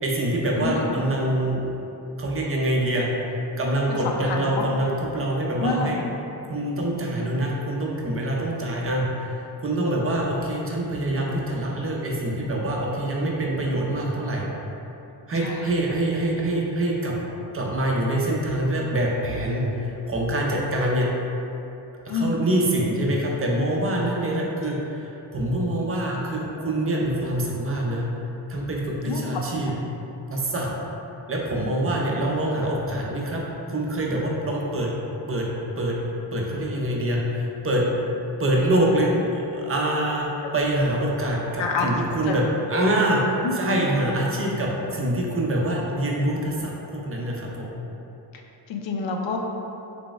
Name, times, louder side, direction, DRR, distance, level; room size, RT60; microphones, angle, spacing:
voice 1, 0.0-1.6 2.2-3.1 3.6-6.0 6.5-9.1 9.6-14.5 15.3-17.1 17.5-21.1 22.1-28.0 28.5-29.7 30.3-30.7 31.3-33.4 33.7-34.9 35.3-35.5 35.8-36.0 36.3-37.9 38.4-43.2 43.5-47.7, right 1 dB, 30° right, -2 dB, 0.4 m, -25 dB
voice 2, 0.6-0.9 3.9-4.7 5.6-6.0 15.3-15.7 22.1-22.4 29.1-29.8 41.6-41.9 42.3-42.4 43.4-43.6 48.7-49.4, left 4 dB, 85° left, 1 dB, 0.5 m, -28 dB
3.8 x 3.4 x 2.4 m, 2.9 s
wide cardioid pair, 125°, 44 cm